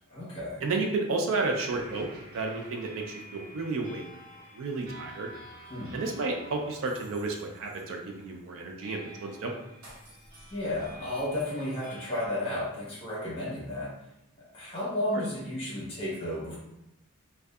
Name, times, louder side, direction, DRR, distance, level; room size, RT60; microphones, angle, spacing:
voice 1, 0.1-0.6 5.7-6.0 10.5-13.9 14.4-16.6, left 1 dB, 25° left, -7 dB, 0.9 m, -33 dB
voice 2, 0.6-2.1 2.3-4.0 4.6-5.3 5.9-9.5 15.1-15.2, right 3 dB, 60° right, 2 dB, 0.3 m, -31 dB
sound 1, 1.7-12.3, equal, 85° right, 0.9 m, -49 dB
2.6 x 2.2 x 2.2 m, 0.84 s
head